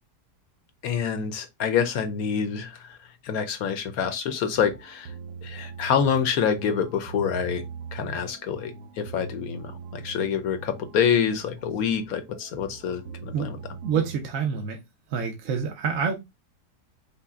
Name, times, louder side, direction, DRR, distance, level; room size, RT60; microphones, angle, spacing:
voice 1, 0.8-5.1 5.4-7.6 7.9-13.6, left 7 dB, 65° left, 1.0 m, -27 dB
sound 1, 4.2-14.2, right 6 dB, 75° right, 1.2 m, -42 dB
voice 2, 13.3-14.8 15.1-16.1, right 6 dB, 55° right, 1.0 m, -27 dB
5.6 x 2.2 x 3.6 m
omnidirectional pair, 1.8 m